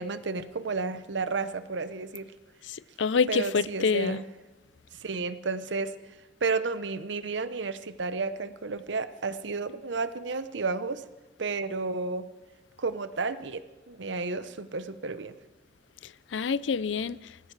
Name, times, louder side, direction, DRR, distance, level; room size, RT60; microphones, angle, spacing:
voice 1, 0.0-2.3 3.3-4.2 5.0-5.9 6.4-11.0 11.4-12.3 12.8-15.4, right 4 dB, 75° right, 0.8 m, -32 dB
voice 2, 2.7-4.2 16.3-17.2, left 5 dB, 75° left, 0.5 m, -27 dB
20.0 x 15.0 x 4.8 m
head